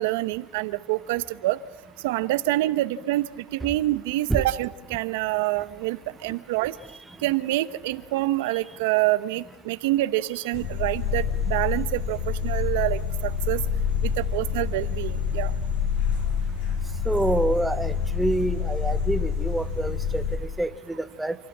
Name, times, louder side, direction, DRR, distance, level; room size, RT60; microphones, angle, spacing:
voice 1, 0.0-1.6 2.0-6.7 7.2-13.6 14.0-15.5, right 17 dB, 75° right, 13 dB, 0.8 m, -26 dB
sound 1, 10.5-20.4, left 7 dB, 60° left, 6.9 m, -27 dB
voice 2, 17.1-20.2 20.6-21.4, right 2 dB, 5° right, 10 dB, 0.7 m, -27 dB
27.5 x 13.5 x 7.3 m, 1.0 s
supercardioid pair, 145°, 0 cm